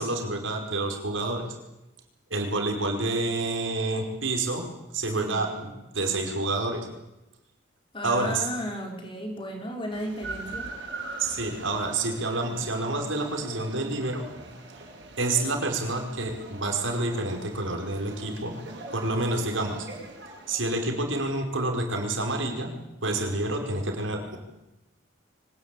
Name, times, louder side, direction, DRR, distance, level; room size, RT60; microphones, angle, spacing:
voice 1, 0.0-1.5 2.3-6.9 8.0-8.5 11.2-14.3 14.8-14.9 15.2-18.6 18.9-19.9 20.5-24.4, right 2 dB, 80° right, 3 dB, 5.1 m, -28 dB
voice 2, 7.9-10.7, equal, 25° left, 2 dB, 4.6 m, -34 dB
sound 1, 9.9-20.6, right 2 dB, 60° right, 6.7 m, -42 dB
24.5 x 18.5 x 9.1 m, 0.96 s
head